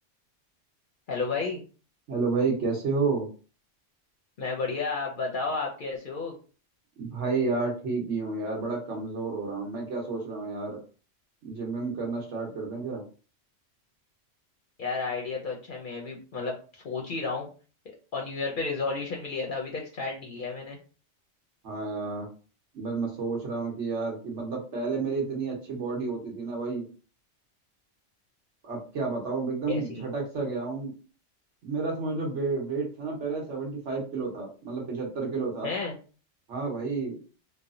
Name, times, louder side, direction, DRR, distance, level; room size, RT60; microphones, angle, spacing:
voice 1, 1.1-1.6 4.4-6.3 14.8-17.5 18.1-20.8 29.7-30.0 35.6-36.0, left 4 dB, 55° left, 0 dB, 0.6 m, -32 dB
voice 2, 2.1-3.3 7.0-10.8 11.4-13.0 21.6-22.3 22.7-26.9 28.6-30.9 31.6-35.7 36.5-37.2, right 4 dB, 70° right, -1 dB, 1.2 m, -30 dB
3.1 x 2.0 x 2.5 m, 0.37 s
omnidirectional pair, 1.3 m